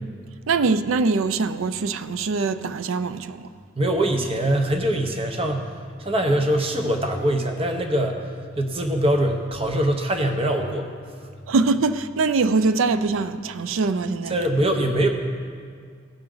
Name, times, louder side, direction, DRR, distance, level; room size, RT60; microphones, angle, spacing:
voice 1, 0.5-3.5 11.5-14.4, right 4 dB, 85° right, 0.5 m, -23 dB
voice 2, 3.8-5.7 6.0-8.2 8.6-10.9 14.3-15.1, right 1 dB, 30° right, 0.8 m, -23 dB
16.0 x 6.0 x 3.8 m
head